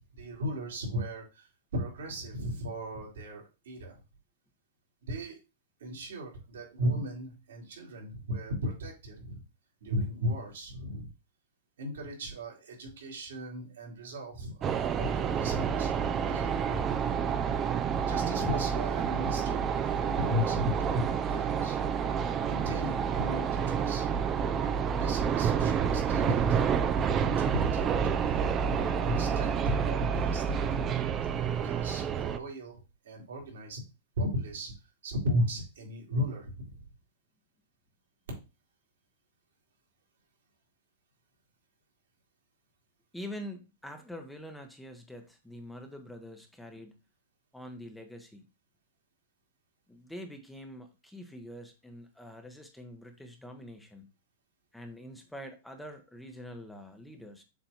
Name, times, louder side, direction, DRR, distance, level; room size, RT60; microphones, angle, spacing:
voice 1, 0.0-4.0 5.1-5.4 5.8-9.4 9.8-11.1 11.8-15.9 16.3-17.0 18.0-21.8 22.4-24.3 25.0-26.7 27.2-30.9 31.6-32.8 33.0-33.8 34.2-34.7 35.0-36.7, equal, 85° right, -1 dB, 3.1 m, -36 dB
sound 1, 14.6-32.4, right 7 dB, 25° right, 0.5 m, -29 dB
voice 2, 43.1-47.0 47.5-48.4 49.9-54.1 54.7-57.4, equal, 5° left, 5 dB, 0.9 m, -45 dB
7.1 x 2.5 x 5.7 m, 0.28 s
hypercardioid pair, 140°, 0 cm